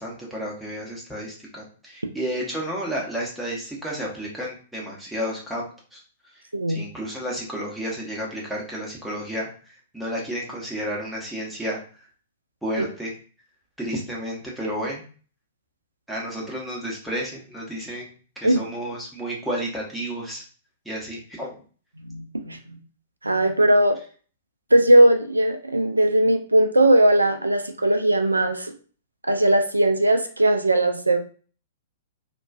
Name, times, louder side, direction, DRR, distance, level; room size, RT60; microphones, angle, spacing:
voice 1, 0.0-5.7 5.9-6.0 6.3-6.4 6.7-12.1 12.6-13.1 13.8-15.0 16.1-20.4 20.8-21.6, equal, ahead, -5 dB, 0.8 m, -31 dB
voice 2, 6.5-6.8 18.4-18.6 22.0-22.8 23.2-24.0 24.7-28.7 29.3-31.2, right 1 dB, 85° right, 6 dB, 0.3 m, -19 dB
2.3 x 2.2 x 2.4 m, 0.40 s
figure-of-eight pair, 105°, 0 cm